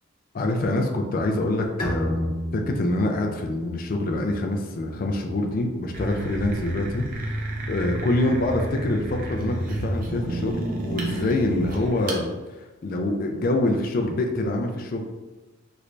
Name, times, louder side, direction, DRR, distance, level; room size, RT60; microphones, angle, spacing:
voice 1, 0.3-7.4 7.7-12.4 12.8-15.0, left 2 dB, 45° left, 2 dB, 0.3 m, -25 dB
Bowed string instrument, 1.8-5.3, left 1 dB, 20° left, 0.7 m, -33 dB
sound 1, 5.9-12.2, right 1 dB, 40° right, 0.5 m, -30 dB
3.2 x 3.0 x 2.5 m, 1.2 s
head